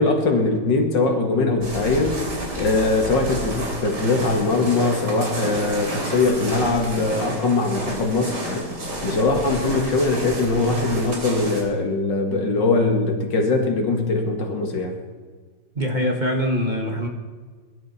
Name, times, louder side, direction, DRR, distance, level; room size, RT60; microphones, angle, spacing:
voice 1, 0.0-2.2 2.6-8.7 9.0-15.0, left 3 dB, 70° left, 3 dB, 2.6 m, -21 dB
sound 1, 1.6-11.6, right 1 dB, 60° right, 3.9 m, -30 dB
voice 2, 15.8-17.1, equal, 25° right, 1 dB, 1.6 m, -23 dB
22.5 x 12.0 x 4.3 m, 1.5 s
omnidirectional pair, 2.0 m